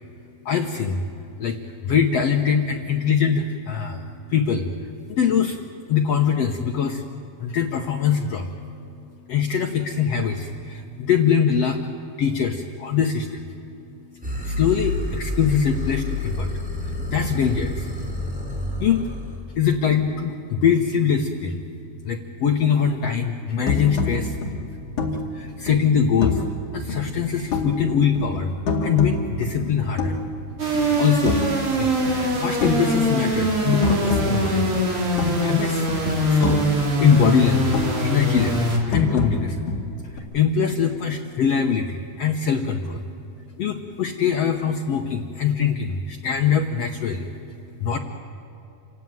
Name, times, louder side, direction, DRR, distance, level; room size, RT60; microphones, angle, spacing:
voice 1, 0.4-1.0 1.4-1.6 1.8-4.7 5.1-5.6 5.9-7.0 7.4-8.5 9.3-11.8 12.2-13.5 14.4-16.5 17.1-17.9 18.8-19.0 19.5-21.6 22.0-24.4 25.3-26.4 26.7-28.5 28.8-30.2 31.0-31.4 31.8-31.9 32.3-34.7 35.4-35.9 36.2-39.7 40.0-43.0 43.6-47.3 47.8-48.0, left 7 dB, 80° left, 3 dB, 1.4 m, -22 dB
sound 1, 14.2-19.4, left 1 dB, ahead, 3.9 m, -29 dB
sound 2, 23.7-26.6 26.9-27.9 28.1-30.4 30.7-31.7 32.0-35.6 35.9-38.1 38.4-40.2, left 3 dB, 55° left, 3.6 m, -28 dB
sound 3, 30.6-38.8, equal, 35° right, 3.9 m, -22 dB
28.0 x 17.0 x 9.4 m, 3.0 s
omnidirectional pair, 4.4 m